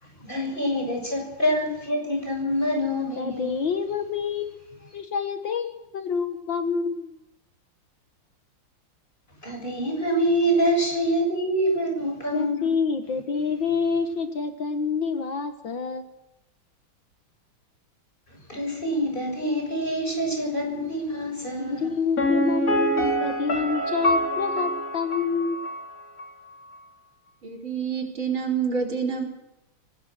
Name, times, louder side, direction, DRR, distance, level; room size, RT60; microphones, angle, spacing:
voice 1, 0.0-3.6 9.4-12.7 18.3-21.9, equal, 20° left, 1 dB, 7.2 m, -26 dB
voice 2, 3.2-7.2 12.3-16.1 21.6-25.6, left 5 dB, 65° left, 8 dB, 2.1 m, -27 dB
Piano, 22.2-25.9 26.2-26.3, right 1 dB, 40° left, 3.7 m, -26 dB
voice 3, 27.4-29.2, right 6 dB, 70° right, 1 dB, 5.1 m, -27 dB
24.0 x 19.0 x 6.3 m, 0.90 s
omnidirectional pair, 2.3 m